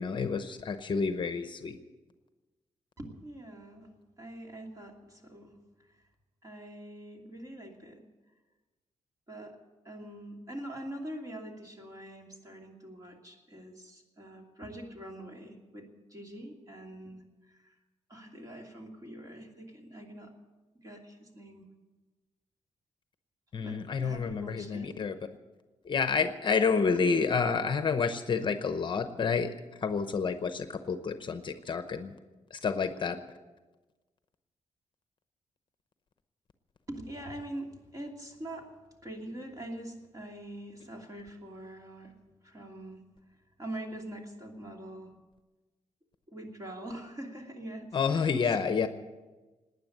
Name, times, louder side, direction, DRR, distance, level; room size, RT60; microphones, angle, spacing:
voice 1, 0.0-1.8 23.5-25.1 25.9-29.5 29.8-32.1 32.5-33.2 47.9-48.9, left 5 dB, 40° left, 9 dB, 0.8 m, -29 dB
voice 2, 3.0-3.9 4.2-6.0 6.4-8.1 9.3-9.6 9.8-17.8 18.1-20.3 20.7-21.6 23.6-24.9 26.8-26.9 36.9-38.7 39.0-42.1 42.4-43.0 43.6-45.1 46.3-48.9, right 1 dB, 25° right, 1 dB, 2.8 m, -44 dB
18.5 x 9.8 x 7.9 m, 1.2 s
wide cardioid pair, 140°, 13 cm